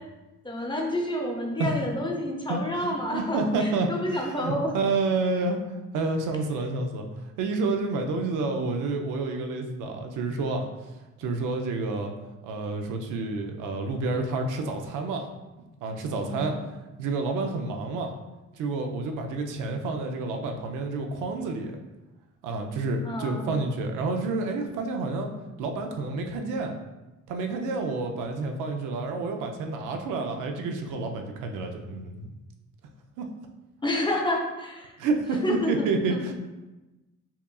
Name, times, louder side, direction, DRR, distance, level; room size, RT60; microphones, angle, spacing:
voice 1, 0.4-4.7 16.1-16.6 23.0-23.4 33.8-34.9 35.4-36.2, left 1 dB, 15° left, 0 dB, 0.7 m, -29 dB
voice 2, 2.5-5.6 5.9-7.1 7.4-10.7 11.2-12.1 12.4-15.3 15.8-16.6 17.0-18.1 18.5-21.8 22.4-25.3 25.6-26.8 27.3-32.3 33.2-33.3 35.0-36.3, right 3 dB, 85° right, 3 dB, 0.5 m, -29 dB
5.6 x 2.4 x 2.3 m, 1.1 s
cardioid pair, 90°, 30 cm